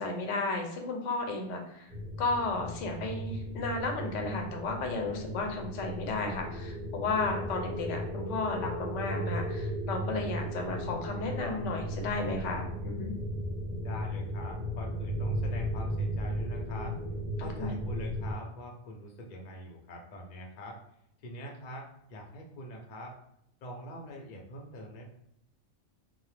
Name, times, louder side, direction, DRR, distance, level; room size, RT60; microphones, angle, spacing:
voice 1, 0.0-1.9 2.2-13.1 17.6-17.7, left 3 dB, 85° left, 3 dB, 0.9 m, -33 dB
sound 1, 1.9-18.3, equal, 50° right, 1.0 m, -36 dB
voice 2, 13.8-17.0 17.4-20.8 21.2-23.2 23.6-25.0, equal, 50° left, 0 dB, 0.5 m, -44 dB
2.9 x 2.0 x 3.2 m, 0.74 s
omnidirectional pair, 1.2 m